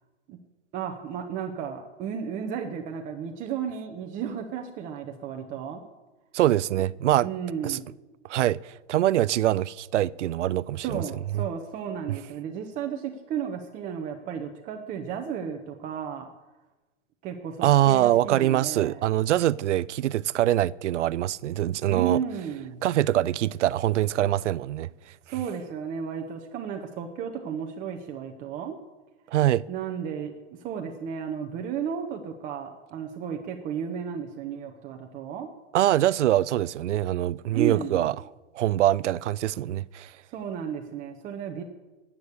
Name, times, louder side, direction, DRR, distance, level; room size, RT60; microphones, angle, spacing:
voice 1, 0.7-5.8 7.2-7.9 10.8-16.3 17.2-19.1 21.9-22.8 25.3-28.8 29.7-30.3 30.6-35.5 37.5-38.0 40.3-41.6, right 8 dB, 20° right, 0.9 m, -33 dB
voice 2, 6.3-7.3 7.6-7.8 8.3-11.0 11.3-11.5 17.6-22.2 22.8-24.9 29.3-29.6 35.7-38.1 38.5-40.1, right 13 dB, 80° right, 0.6 m, -24 dB
12.5 x 8.4 x 8.2 m
hypercardioid pair, 150°, 35 cm